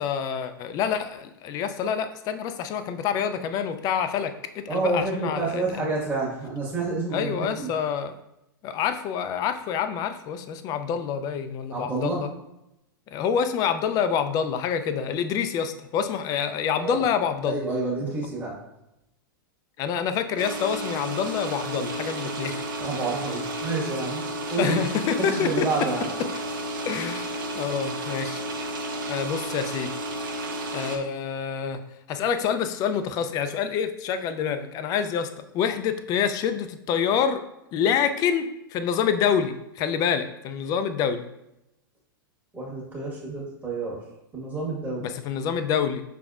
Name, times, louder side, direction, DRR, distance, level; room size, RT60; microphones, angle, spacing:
voice 1, 0.0-5.9 7.1-8.1 8.6-12.3 13.1-17.6 19.8-22.6 24.6-25.7 26.9-28.4 29.1-29.9 30.7-31.8 32.1-35.3 35.5-37.4 37.7-41.2 45.0-46.0, left 7 dB, 30° left, 9 dB, 0.4 m, -27 dB
voice 2, 4.7-7.7 11.7-12.2 16.8-17.0 17.4-18.5 22.8-24.2 24.5-24.8 25.2-26.1 42.5-44.0 44.3-45.0, right 3 dB, 15° right, -5 dB, 1.5 m, -29 dB
sound 1, 20.4-31.0, right 1 dB, 65° right, 0.8 m, -32 dB
5.8 x 3.4 x 2.4 m, 0.86 s
hypercardioid pair, 105°, 12 cm